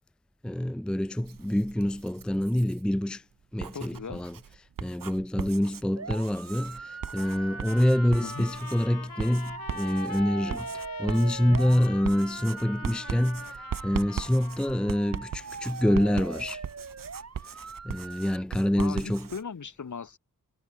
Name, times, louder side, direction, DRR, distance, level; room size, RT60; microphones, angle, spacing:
voice 1, 0.4-3.2 3.5-4.4 4.8-16.6 17.8-19.3, left 1 dB, 5° left, 0.6 m, -26 dB
Writing, 1.2-2.8 3.4-19.4, right 8 dB, 70° right, 1.3 m, -39 dB
voice 2, 3.7-4.2 8.2-8.4 18.8-20.2, left 6 dB, 55° left, 2.1 m, -38 dB
sound 1, 6.0-18.4, right 4 dB, 45° right, 2.5 m, -41 dB
Trumpet, 7.2-15.0, left 9 dB, 90° left, 1.8 m, -45 dB
cardioid pair, 55°, 35 cm